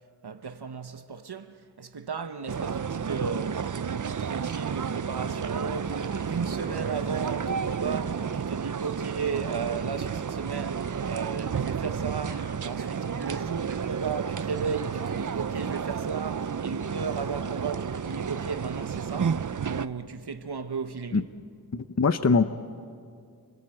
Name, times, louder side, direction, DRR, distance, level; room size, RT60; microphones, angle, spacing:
voice 1, 0.2-21.3, right 5 dB, 80° right, 1.0 m, -35 dB
sound 1, 2.5-19.9, right 7 dB, 50° right, 0.6 m, -31 dB
sound 2, 6.2-20.4 20.9-21.0, right 1 dB, 25° right, 3.8 m, -48 dB
voice 2, 21.7-22.5, left 4 dB, 40° left, 0.8 m, -22 dB
28.5 x 21.0 x 7.8 m
wide cardioid pair, 65°, 39 cm